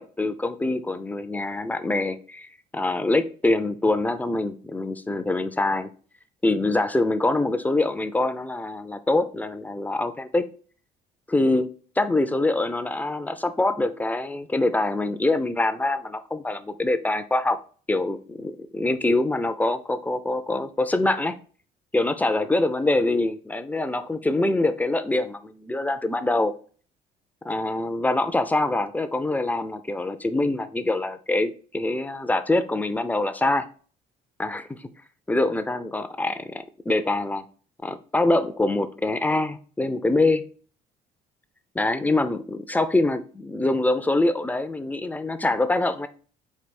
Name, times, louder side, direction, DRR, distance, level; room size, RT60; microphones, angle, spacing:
voice 1, 0.0-2.5 2.7-5.9 6.4-10.4 11.3-11.7 12.0-17.6 17.9-21.3 21.9-26.5 27.4-33.7 34.4-34.8 35.3-37.4 37.8-40.4 41.7-46.1, left 2 dB, 10° left, 10 dB, 0.5 m, -24 dB
4.6 x 2.7 x 4.2 m, 0.41 s
cardioid pair, 110°, 17 cm